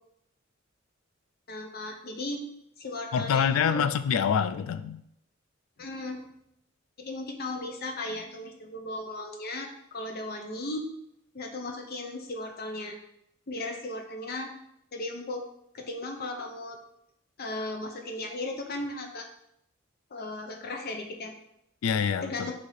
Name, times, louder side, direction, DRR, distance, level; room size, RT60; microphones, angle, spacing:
voice 1, 1.5-2.4 2.8-3.8 5.8-6.2 7.0-10.9 11.3-13.0 13.5-14.5 14.9-15.4 15.7-16.8 17.4-19.3 20.1-21.3 22.2-22.5, left 2 dB, 50° left, 3 dB, 0.7 m, -36 dB
voice 2, 3.1-5.0 21.8-22.5, left 7 dB, 85° left, 12 dB, 0.3 m, -26 dB
4.0 x 2.8 x 4.7 m, 0.76 s
head